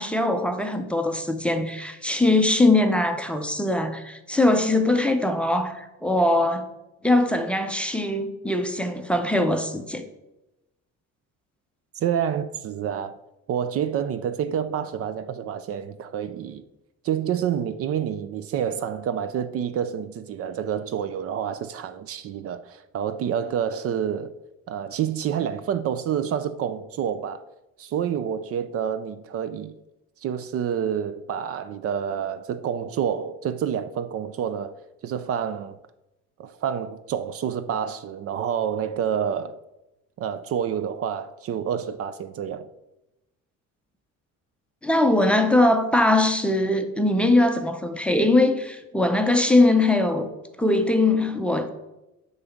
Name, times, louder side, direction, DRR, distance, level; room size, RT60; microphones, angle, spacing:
voice 1, 0.0-6.7 7.0-10.1 44.8-50.3 50.6-51.7, left 2 dB, 5° left, 0.6 m, -21 dB
voice 2, 11.9-13.2 13.5-16.6 17.0-24.3 24.7-27.4 27.8-29.7 30.2-34.7 35.0-35.8 36.4-39.6 40.2-42.7, right 8 dB, 50° right, 0.5 m, -28 dB
9.7 x 4.0 x 7.1 m
cardioid pair, 165°, 30 cm